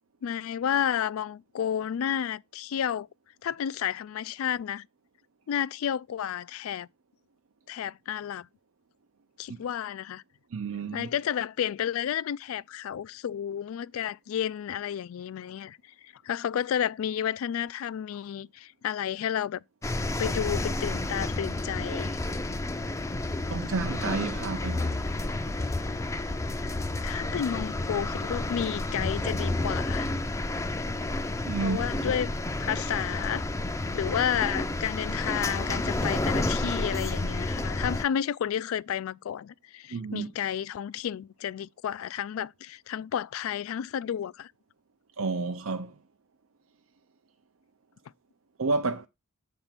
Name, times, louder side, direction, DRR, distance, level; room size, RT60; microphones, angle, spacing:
voice 1, 0.2-3.1 3.4-4.9 5.5-6.9 7.7-8.5 9.4-10.2 10.9-15.8 16.0-19.6 20.2-22.2 27.0-30.1 31.6-32.3 32.6-33.5 33.9-44.5, left 9 dB, 75° left, 0.3 m, -31 dB
voice 2, 10.5-11.1 23.5-25.1 31.4-32.1 39.9-40.3 45.2-45.9 48.6-49.1, right 4 dB, 75° right, 0.6 m, -31 dB
sound 1, 19.8-38.0, left 2 dB, 15° left, 0.4 m, -30 dB
7.9 x 3.5 x 5.8 m
head